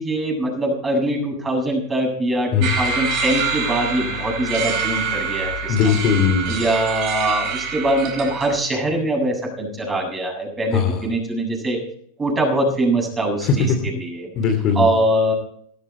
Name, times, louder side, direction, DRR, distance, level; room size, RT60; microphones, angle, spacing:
voice 1, 0.0-5.8 6.5-11.8 12.2-13.7 14.0-14.3 14.8-15.3, right 1 dB, 15° right, 1 dB, 7.8 m, -22 dB
sound 1, 2.6-8.5, right 4 dB, 40° right, 5.2 m, -25 dB
voice 2, 5.7-6.6 10.7-11.0 13.4-13.8 14.3-14.9, left 6 dB, 35° left, 5 dB, 2.7 m, -19 dB
18.0 x 14.0 x 4.4 m, 0.64 s
figure-of-eight pair, 90°, 0 cm